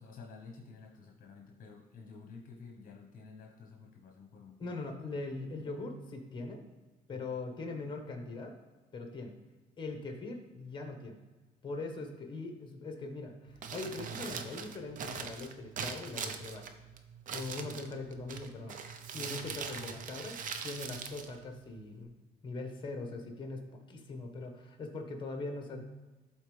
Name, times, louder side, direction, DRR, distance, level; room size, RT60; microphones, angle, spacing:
voice 1, 0.0-4.8 7.1-7.3, left 4 dB, 55° left, 1 dB, 1.1 m, -51 dB
voice 2, 4.6-6.6 7.1-8.6 8.9-9.3 9.8-11.2 11.6-16.7 17.3-18.8 19.1-22.1 22.4-25.8, left 3 dB, 25° left, 4 dB, 1.3 m, -41 dB
Crumpling crinkling, 13.5-22.0, right 6 dB, 50° right, 0.7 m, -42 dB
12.0 x 4.2 x 3.3 m, 1.2 s
cardioid pair, 110°, 17 cm